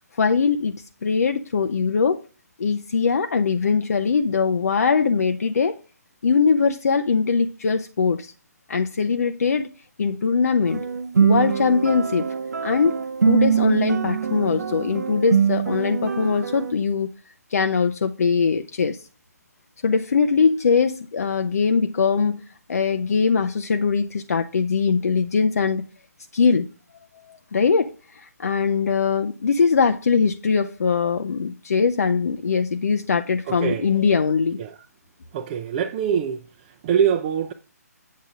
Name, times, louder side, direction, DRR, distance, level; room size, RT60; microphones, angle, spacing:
voice 1, 0.2-2.2 2.6-5.8 6.2-8.3 8.7-9.7 10.0-10.8 11.2-12.3 12.6-13.0 13.3-17.1 17.5-19.0 19.8-22.4 22.7-25.8 26.3-26.7 27.3-34.6, left 5 dB, 65° left, 0.7 m, -21 dB
sound 1, 10.7-16.7, right 7 dB, 75° right, 0.7 m, -23 dB
voice 2, 33.5-33.9 34.6-34.7 35.3-36.4 36.8-37.5, right 8 dB, 30° right, 0.6 m, -23 dB
8.5 x 7.5 x 3.6 m
figure-of-eight pair, 140°, 9 cm